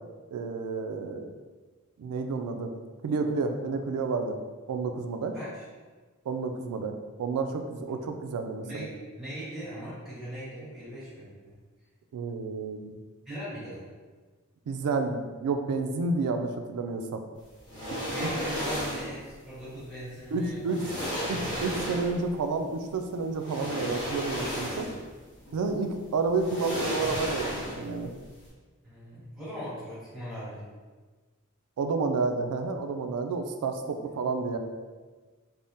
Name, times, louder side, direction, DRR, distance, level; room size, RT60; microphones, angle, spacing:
voice 1, 0.3-1.3 2.0-2.7 3.0-4.4 4.7-5.4 6.3-8.9 12.1-13.0 14.7-17.2 18.0-18.3 20.3-20.9 21.3-24.9 25.5-28.1 31.8-34.6, right 4 dB, 85° right, 5 dB, 0.3 m, -30 dB
voice 2, 5.3-5.6 8.6-11.5 13.2-13.8 18.1-21.4 28.8-30.7, equal, ahead, -12 dB, 1.3 m, -40 dB
sound 1, 17.7-19.2 20.2-20.3 20.7-22.3 23.4-25.1 25.4-25.6 26.4-28.0 28.3-28.4, equal, 20° left, 1.0 m, -33 dB
3.5 x 2.1 x 2.6 m, 1.4 s
head